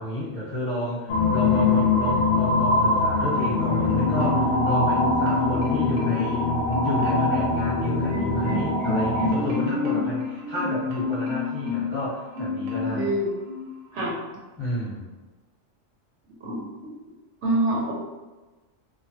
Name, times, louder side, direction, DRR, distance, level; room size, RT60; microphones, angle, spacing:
voice 1, 0.0-6.4 6.8-13.1 14.6-15.1, left 1 dB, 10° left, -10 dB, 1.0 m, -31 dB
sound 1, 1.1-9.3, left 2 dB, 75° left, 0.4 m, -23 dB
Marimba xylophone, 3.9-4.6 4.9-6.4 6.7-7.4 7.8-12.0 12.3-13.1 13.4-13.6, left 4 dB, 90° right, 1.1 m, -29 dB
voice 2, 12.9-13.3 13.9-14.1 16.4-16.6 17.4-17.9, right 1 dB, 70° right, -4 dB, 0.9 m, -25 dB
3.0 x 2.2 x 2.7 m, 1.2 s
omnidirectional pair, 1.3 m